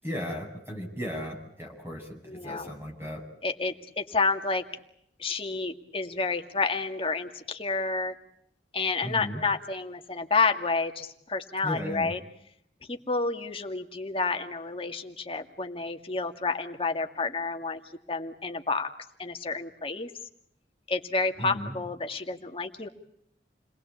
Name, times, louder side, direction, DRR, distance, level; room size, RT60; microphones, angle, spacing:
voice 1, 0.0-3.2 9.0-9.4 11.6-12.2 21.4-21.8, equal, 15° right, 1 dB, 7.9 m, -36 dB
voice 2, 2.3-2.7 3.4-4.7 5.2-8.1 8.7-12.2 12.9-17.8 18.1-18.9 19.2-20.1 20.9-22.9, left 4 dB, 30° left, 5 dB, 2.3 m, -30 dB
29.5 x 21.0 x 8.6 m, 0.73 s
head